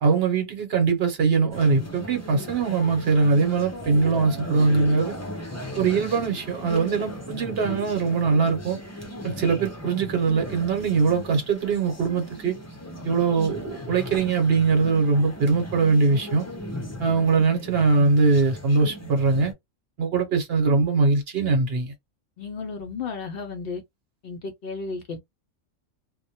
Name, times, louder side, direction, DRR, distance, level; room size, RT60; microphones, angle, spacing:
voice 1, 0.0-5.1 5.8-8.8 9.2-12.6 13.0-16.5 17.0-19.5 20.0-21.9, right 4 dB, 55° right, 0.9 m, -22 dB
sound 1, 1.5-19.5, equal, 25° left, 0.3 m, -37 dB
voice 2, 22.4-23.8 24.2-25.2, left 4 dB, 60° left, 0.6 m, -33 dB
2.1 x 2.1 x 2.7 m
omnidirectional pair, 1.3 m